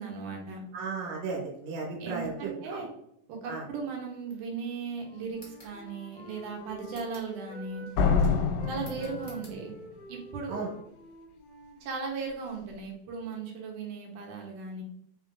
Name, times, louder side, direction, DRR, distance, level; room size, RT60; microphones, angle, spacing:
voice 1, 0.0-0.6 2.0-2.9 3.3-7.9 8.7-9.7 10.1-10.7 11.8-14.8, right 4 dB, 80° right, 1 dB, 2.4 m, -37 dB
voice 2, 0.7-2.8 3.5-3.6 10.5-10.7, right 4 dB, 60° right, -2 dB, 2.4 m, -35 dB
Wind instrument woodwind instrument, 4.9-8.2 8.5-12.3, equal, 70° left, 1.4 m, -48 dB
sound 1, 5.3-5.8 6.9-7.4 8.8-9.6, left 1 dB, 55° left, 0.4 m, -52 dB
Slam, 8.0-9.9, left 5 dB, 90° left, 2.2 m, -26 dB
5.1 x 3.7 x 2.4 m, 0.75 s
omnidirectional pair, 3.7 m